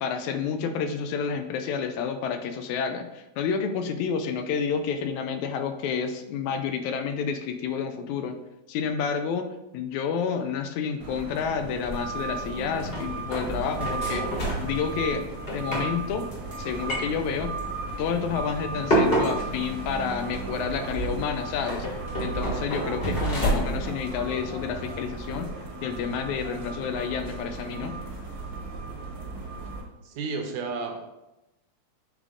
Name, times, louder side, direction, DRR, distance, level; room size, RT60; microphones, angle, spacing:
voice 1, 0.0-8.4 8.7-15.2 15.5-16.3 16.6-17.6 18.0-25.5 25.8-28.0, left 6 dB, 80° left, 7 dB, 1.9 m, -30 dB
sound 1, 11.0-29.8, right 3 dB, 60° right, 1.4 m, -36 dB
sound 2, 11.8-25.5, right 1 dB, 45° left, 0.7 m, -31 dB
voice 2, 30.0-31.1, right 4 dB, 75° right, 4 dB, 2.0 m, -32 dB
8.1 x 3.7 x 3.7 m, 0.95 s
omnidirectional pair, 3.4 m